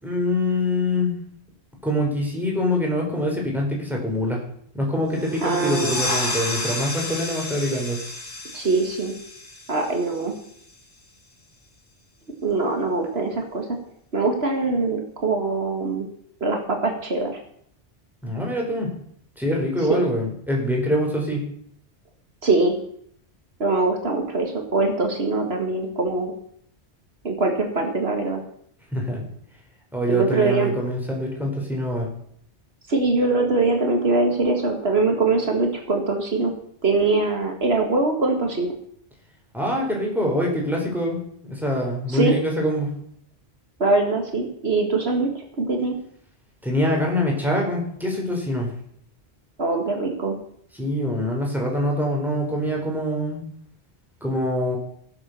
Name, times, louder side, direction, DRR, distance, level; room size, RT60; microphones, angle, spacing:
voice 1, 0.0-1.2 1.8-4.4 4.7-8.0 18.2-18.9 19.4-21.4 28.9-29.2 29.9-32.1 39.5-42.9 46.6-48.7 50.8-53.4 54.2-54.8, left 1 dB, ahead, -1 dB, 4.4 m, -24 dB
sound 1, 5.1-10.5, left 2 dB, 70° left, 3.4 m, -31 dB
voice 2, 5.4-6.0 8.5-9.1 9.7-10.4 12.4-13.8 14.1-16.1 16.4-17.4 19.9-20.0 22.4-22.8 23.6-26.3 27.2-28.4 30.1-30.7 32.9-36.5 36.8-38.7 42.1-42.3 43.8-46.0 49.6-50.4, right 3 dB, 65° right, 3 dB, 2.1 m, -22 dB
16.5 x 7.8 x 6.9 m, 0.66 s
omnidirectional pair, 1.1 m